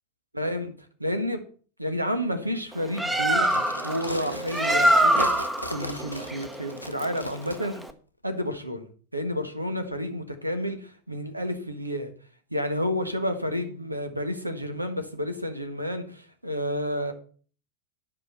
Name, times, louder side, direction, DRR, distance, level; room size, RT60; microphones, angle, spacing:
voice 1, 0.3-0.7 1.0-1.4 1.8-7.8 8.2-8.9 9.1-12.1 12.5-17.1, equal, 85° right, 1.5 m, -30 dB
Bird, 2.7-7.9, right 1 dB, 5° right, 0.9 m, -25 dB
sound 1, 3.3-7.6, equal, 90° left, 0.8 m, -37 dB
10.5 x 5.3 x 6.8 m
figure-of-eight pair, 90°, 0 cm